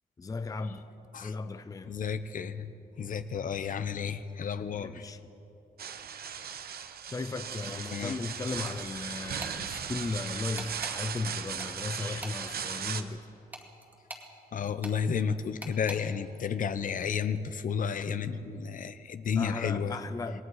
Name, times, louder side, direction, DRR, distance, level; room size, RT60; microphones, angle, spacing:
voice 1, 0.2-0.9 1.2-1.9 4.7-5.2 7.1-13.3 19.4-20.4, left 3 dB, 20° left, 10 dB, 0.5 m, -36 dB
voice 2, 1.9-2.7 3.0-5.0 7.9-8.2 12.0-12.2 14.5-20.0, left 6 dB, 55° left, 12 dB, 0.8 m, -32 dB
sound 1, 5.8-13.0, right 7 dB, 70° right, 1.0 m, -37 dB
sound 2, 8.7-9.0 9.4-9.6 10.6-11.0 11.6-12.6 13.5-14.3 14.8-15.0 15.6-16.0, right 1 dB, 10° right, 2.2 m, -43 dB
27.5 x 21.5 x 4.8 m, 2.9 s
wide cardioid pair, 165°, 16 cm